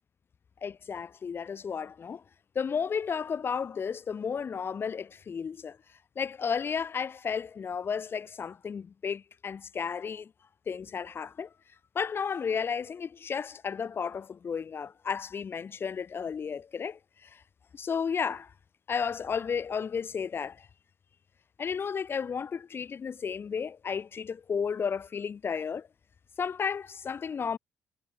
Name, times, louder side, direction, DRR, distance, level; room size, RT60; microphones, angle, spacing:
voice 1, 0.6-2.2 2.5-5.8 6.2-10.3 10.7-11.5 11.9-17.4 17.7-18.5 18.9-20.7 21.6-25.9 26.4-27.6, left 6 dB, 35° left, 0.5 m, -33 dB
figure-of-eight pair, 50°, 7 cm